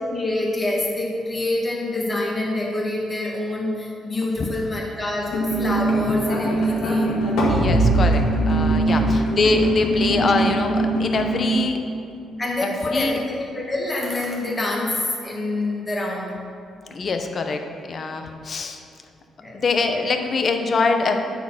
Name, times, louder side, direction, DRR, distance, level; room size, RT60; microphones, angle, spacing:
voice 1, 0.1-7.3 8.8-9.1 12.4-16.5 19.4-19.6, left 2 dB, 20° left, -3 dB, 1.9 m, -26 dB
sound 1, 5.3-11.5, right 1 dB, 90° left, 1.5 m, -21 dB
voice 2, 7.5-11.8 12.9-13.1 16.9-17.6 17.9-18.8 19.5-21.2, left 4 dB, 45° left, 5 dB, 0.8 m, -23 dB
9.1 x 4.3 x 5.8 m, 2.6 s
cardioid pair, 90°, 0 cm